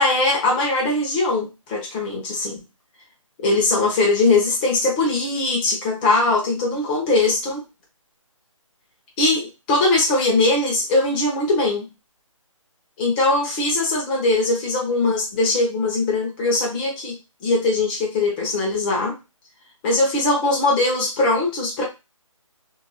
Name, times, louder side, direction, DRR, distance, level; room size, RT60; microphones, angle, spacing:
voice 1, 0.0-2.6 3.4-7.6 9.2-11.9 13.0-17.1 17.4-19.1 19.8-21.8, left 2 dB, 15° left, -2 dB, 0.9 m, -21 dB
3.3 x 2.7 x 2.3 m, 0.26 s
figure-of-eight pair, 155°, 17 cm